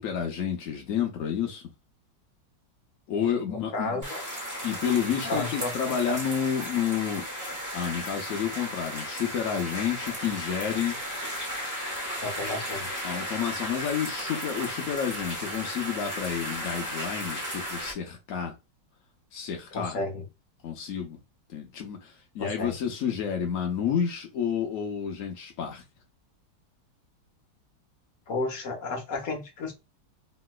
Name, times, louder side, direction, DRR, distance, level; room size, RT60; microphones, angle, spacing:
voice 1, 0.0-1.6 3.1-4.0 4.6-7.2 7.7-11.0 13.0-18.6 19.3-20.0 20.6-21.2 21.5-25.8, left 8 dB, 80° left, 0.7 m, -30 dB
voice 2, 3.5-4.2 5.2-5.7 6.1-6.2 12.2-13.0 19.7-20.2 22.4-22.8 28.3-29.7, left 2 dB, 55° left, 0.9 m, -32 dB
sound 1, 4.0-17.9, equal, 30° right, 0.3 m, -35 dB
3.1 x 2.9 x 2.3 m
omnidirectional pair, 2.3 m